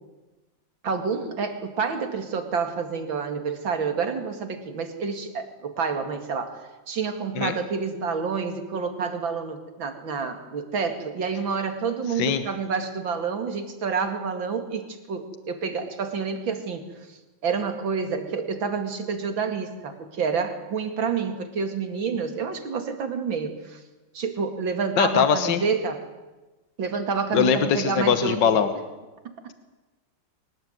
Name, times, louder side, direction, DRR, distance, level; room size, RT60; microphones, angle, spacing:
voice 1, 0.8-6.6 6.9-23.8 24.1-26.0 26.8-28.4 29.2-29.3, right 5 dB, 85° right, 7 dB, 3.0 m, -28 dB
voice 2, 25.0-25.6 27.3-28.7, left 7 dB, 70° left, 10 dB, 1.9 m, -21 dB
23.5 x 19.5 x 9.3 m, 1.1 s
omnidirectional pair, 2.1 m